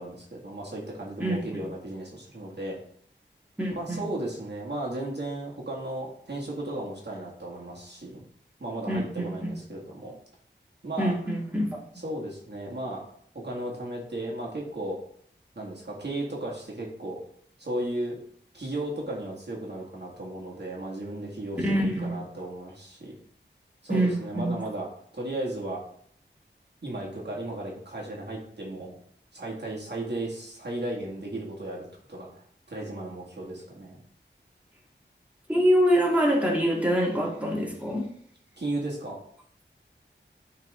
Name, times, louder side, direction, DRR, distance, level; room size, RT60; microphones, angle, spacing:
voice 1, 0.0-2.8 3.7-8.2 8.6-10.1 10.8-11.1 12.0-13.0 13.3-15.0 15.6-17.2 17.6-18.2 18.5-23.2 23.8-24.9 25.1-25.8 26.8-29.0 29.3-32.4 32.7-34.0 38.6-39.2, right 1 dB, 60° right, -4 dB, 2.0 m, -35 dB
voice 2, 1.2-1.7 3.6-4.1 8.9-9.5 11.0-11.8 21.6-22.2 23.9-24.6 35.5-38.1, equal, 5° right, -3 dB, 1.9 m, -25 dB
10.0 x 4.1 x 3.7 m, 0.63 s
wide cardioid pair, 55°, 19 cm